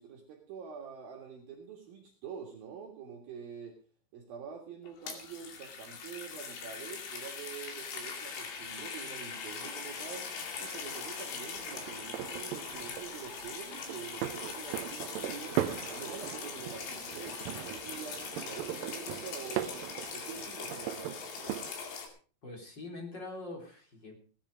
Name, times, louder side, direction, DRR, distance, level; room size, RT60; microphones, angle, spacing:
voice 1, 0.0-3.8 4.1-10.3 10.6-15.6 15.9-19.8 20.1-21.2, right 7 dB, 60° right, 0 dB, 3.4 m, -46 dB
sound 1, 4.8-22.1, left 5 dB, 75° left, 4.6 m, -41 dB
sound 2, 11.6-21.7, right 13 dB, 90° right, 2.0 m, -39 dB
voice 2, 22.4-24.2, left 2 dB, 25° left, 2 dB, 3.4 m, -43 dB
17.5 x 11.0 x 5.1 m, 0.39 s
omnidirectional pair, 5.1 m